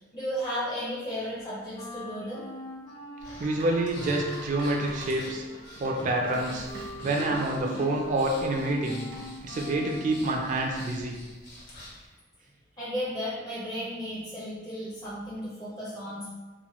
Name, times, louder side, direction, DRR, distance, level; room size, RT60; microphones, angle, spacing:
voice 1, 0.0-2.4 12.8-16.3, equal, 20° left, -9 dB, 0.5 m, -34 dB
Wind instrument woodwind instrument, 1.7-10.3, left 1 dB, 70° left, 0.7 m, -43 dB
Breathing, 3.2-12.1, left 1 dB, 50° left, 1.0 m, -47 dB
voice 2, 3.4-5.5 5.8-6.7 7.0-9.1 9.4-11.2, right 2 dB, 40° right, 1 dB, 0.3 m, -27 dB
sound 1, 3.6-7.9 9.1-9.5, equal, 80° right, 0.7 m, -44 dB
2.9 x 2.1 x 2.9 m, 1.3 s
head